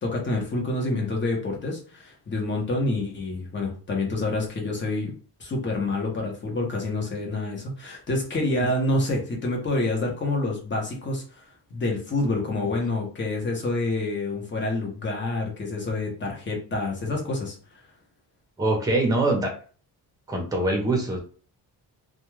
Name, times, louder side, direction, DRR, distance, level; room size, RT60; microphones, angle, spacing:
voice 1, 0.0-5.1 5.4-11.4 11.7-17.6, left 2 dB, 30° left, 0 dB, 0.9 m, -27 dB
voice 2, 18.6-19.6 20.3-21.2, right 2 dB, 10° right, 0 dB, 0.7 m, -23 dB
2.3 x 2.3 x 3.1 m, 0.39 s
cardioid pair, 145°, 39 cm